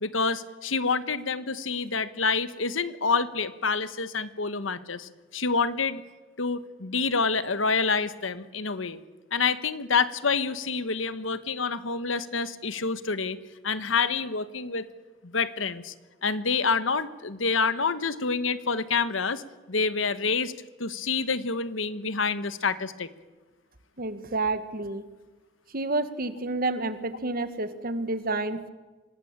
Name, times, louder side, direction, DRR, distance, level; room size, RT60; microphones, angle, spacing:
voice 1, 0.0-6.0 6.4-9.0 9.3-13.4 13.6-14.9 15.3-15.9 16.2-19.4 19.7-20.5 20.8-23.1, left 4 dB, 80° left, 13 dB, 1.3 m, -27 dB
voice 2, 24.0-25.0 25.7-28.7, right 2 dB, 50° right, 11 dB, 1.7 m, -29 dB
25.5 x 19.0 x 8.9 m, 1.2 s
head